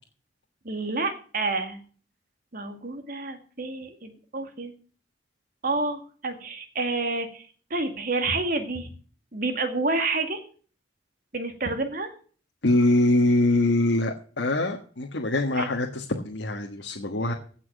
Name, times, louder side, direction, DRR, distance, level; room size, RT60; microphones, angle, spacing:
voice 1, 0.6-1.8 2.5-4.7 5.6-8.9 9.3-10.4 11.3-12.1 15.5-15.7, right 3 dB, 50° right, 6 dB, 2.2 m, -29 dB
voice 2, 12.6-17.3, left 2 dB, 85° left, 2 dB, 1.5 m, -23 dB
16.0 x 6.1 x 6.3 m, 0.43 s
head